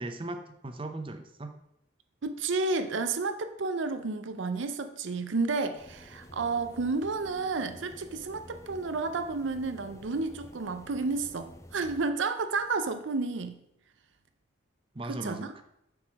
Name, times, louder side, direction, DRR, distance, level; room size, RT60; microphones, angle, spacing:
voice 1, 0.0-1.5 14.9-15.6, right 2 dB, 25° right, 6 dB, 0.7 m, -38 dB
voice 2, 2.2-13.6 15.0-15.5, right 3 dB, 65° right, 9 dB, 0.6 m, -31 dB
sound 1, 5.7-12.1, left 1 dB, 15° left, 0.5 m, -51 dB
6.9 x 4.8 x 6.2 m, 0.80 s
head